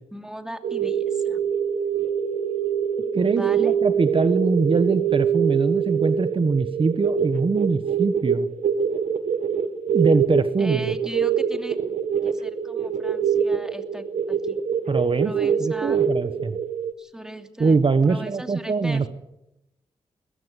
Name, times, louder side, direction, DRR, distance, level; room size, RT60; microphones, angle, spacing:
voice 1, 0.1-1.4 3.3-3.7 10.6-11.8 12.2-14.6 15.2-16.0 17.0-17.8 18.0-19.1, equal, 5° right, 6 dB, 2.8 m, -37 dB
sound 1, 0.6-16.9, right 7 dB, 80° right, 1.6 m, -24 dB
voice 2, 3.1-8.5 9.9-11.0 14.9-16.6 17.6-19.1, right 4 dB, 45° right, 11 dB, 1.2 m, -23 dB
21.5 x 15.0 x 9.7 m, 0.90 s
cardioid pair, 70°, 13 cm